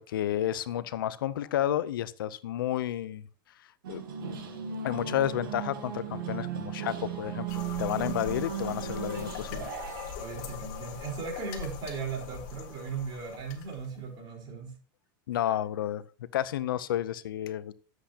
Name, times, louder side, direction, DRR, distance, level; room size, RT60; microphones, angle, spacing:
voice 1, 0.0-3.2 3.9-4.0 4.8-9.7 15.3-16.0 16.3-17.7, left 12 dB, 90° left, 17 dB, 0.6 m, -31 dB
sound 1, 3.8-10.1, right 7 dB, 90° right, 2.2 m, -36 dB
sound 2, 7.5-14.1, left 7 dB, 60° left, 1.9 m, -42 dB
voice 2, 10.2-14.8, right 5 dB, 40° right, 0 dB, 4.2 m, -37 dB
12.0 x 7.9 x 2.9 m, 0.39 s
supercardioid pair, 120°, 11 cm